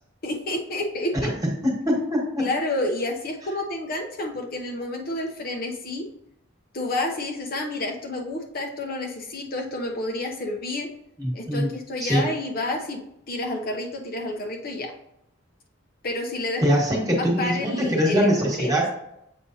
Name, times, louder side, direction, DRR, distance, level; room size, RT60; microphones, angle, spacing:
voice 1, 0.2-1.3 2.4-6.1 6.7-10.9 11.3-14.9 16.0-16.8 17.2-18.3 18.6-18.7, left 2 dB, 50° left, 1 dB, 0.8 m, -29 dB
voice 2, 1.6-2.5 11.2-11.7 12.0-12.3 16.6-18.9, equal, 20° right, -2 dB, 1.5 m, -23 dB
7.3 x 5.0 x 2.8 m, 0.78 s
head